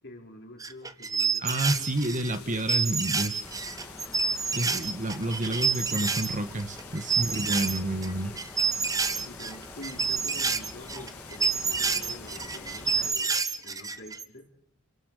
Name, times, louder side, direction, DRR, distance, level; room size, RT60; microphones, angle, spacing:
voice 1, 0.0-1.9 2.4-3.0 7.7-7.8 8.2-8.4 9.2-13.3 13.6-14.5, left 1 dB, 55° left, 1 dB, 4.8 m, -47 dB
sound 1, 0.6-6.4 6.6-8.1 8.4-14.2, right 5 dB, 15° right, 1.1 m, -28 dB
voice 2, 1.4-3.5 4.5-8.3, right 1 dB, 35° right, 9 dB, 1.6 m, -29 dB
sound 2, 1.7-13.4, left 8 dB, 90° left, 1.7 m, -49 dB
sound 3, 3.4-13.1, left 1 dB, 10° left, 2.2 m, -46 dB
28.5 x 18.0 x 6.7 m, 0.64 s
head